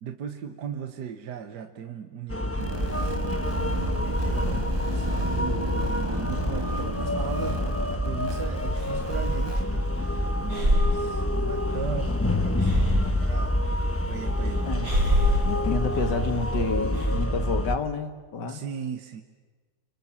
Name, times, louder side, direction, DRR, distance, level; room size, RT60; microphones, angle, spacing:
voice 1, 0.0-13.6 14.1-14.9 18.5-19.2, right 7 dB, 70° right, 7 dB, 1.7 m, -38 dB
sound 1, 2.3-17.8, left 1 dB, 10° left, 0.7 m, -27 dB
sound 2, 2.6-9.6, right 1 dB, 15° right, 1.3 m, -31 dB
Breathing, 8.7-17.2, equal, 50° right, 4.5 m, -29 dB
voice 2, 15.4-18.6, left 4 dB, 70° left, 8 dB, 2.5 m, -30 dB
30.0 x 25.5 x 7.4 m, 1.4 s
omnidirectional pair, 1.9 m